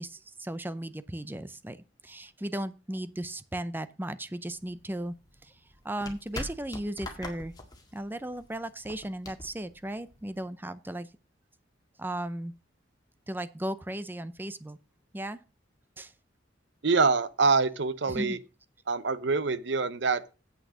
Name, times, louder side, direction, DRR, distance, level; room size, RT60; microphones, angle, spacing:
voice 1, 0.0-1.8 2.0-5.1 5.4-5.5 5.8-7.5 7.9-11.1 12.0-12.5 13.3-14.8 15.1-15.4 16.0-16.1 18.1-18.4, right 1 dB, 10° right, 0.6 m, -36 dB
sound 1, 4.5-10.5, left 2 dB, 20° left, 1.9 m, -44 dB
voice 2, 16.8-18.4 18.9-20.3, right 4 dB, 65° right, 0.7 m, -25 dB
8.4 x 6.4 x 6.3 m
head